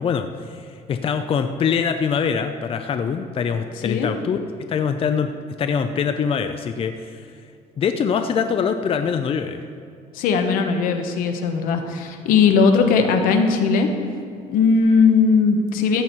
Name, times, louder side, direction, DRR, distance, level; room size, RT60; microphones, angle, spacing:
voice 1, 0.0-4.4 4.7-5.3 5.6-7.3 7.8-9.6, left 6 dB, 40° left, 7 dB, 0.6 m, -23 dB
voice 2, 10.1-13.9 14.5-16.0, left 5 dB, 85° left, 5 dB, 1.2 m, -18 dB
14.5 x 8.1 x 4.5 m, 2.3 s
cardioid pair, 110°, 14 cm